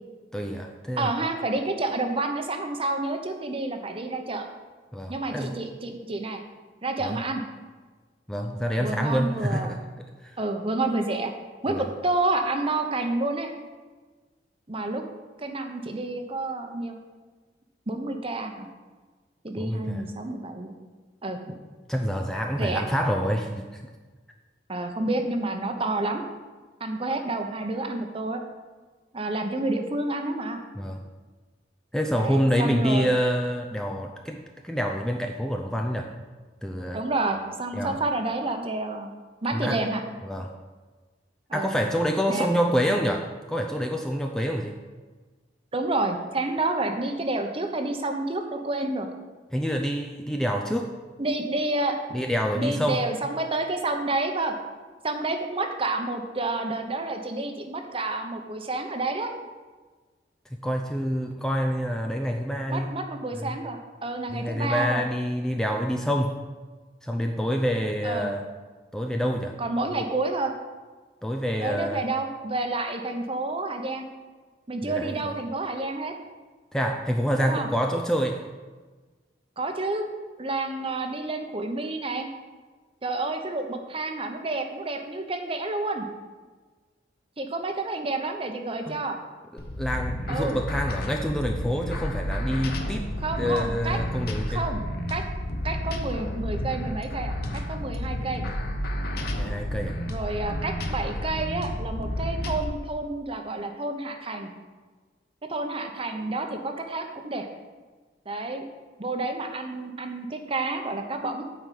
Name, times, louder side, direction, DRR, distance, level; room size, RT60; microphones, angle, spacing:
voice 1, 0.3-1.1 4.9-5.6 7.0-7.2 8.3-9.8 10.2-10.4 11.7-11.8 19.6-20.0 21.9-23.8 30.8-31.0 31.9-36.1 36.6-37.0 37.7-38.0 39.5-39.8 40.2-40.5 41.5-44.7 49.5-50.9 52.1-53.1 60.5-62.9 63.3-63.6 64.3-66.4 67.0-68.4 68.9-69.6 71.2-72.0 74.8-75.3 76.7-78.4 88.8-89.0 89.5-93.1 93.4-94.6 99.3-100.0, equal, 5° left, 2 dB, 0.5 m, -27 dB
voice 2, 1.0-4.5 5.1-6.4 6.8-7.4 8.8-9.8 10.4-11.3 11.6-13.5 14.7-15.0 15.4-17.0 17.9-18.7 19.4-20.7 21.2-21.5 22.6-22.8 24.7-26.2 26.8-28.4 29.1-30.6 32.1-33.1 36.9-39.1 39.4-40.0 41.5-41.7 42.3-42.5 45.7-49.1 51.2-52.0 52.5-54.5 55.0-59.3 62.7-65.0 68.0-68.3 69.6-70.5 71.6-74.1 74.7-76.1 77.4-77.7 79.6-80.1 80.4-82.3 83.0-86.1 87.4-89.2 90.3-90.6 93.2-94.0 94.5-94.8 95.1-95.2 95.6-98.4 100.1-104.5 105.5-107.5 108.3-108.7 109.0-111.4, right 2 dB, 30° right, 5 dB, 0.9 m, -29 dB
sound 1, 89.6-102.6, left 1 dB, 55° left, 1.1 m, -31 dB
9.1 x 4.8 x 7.6 m, 1.4 s
head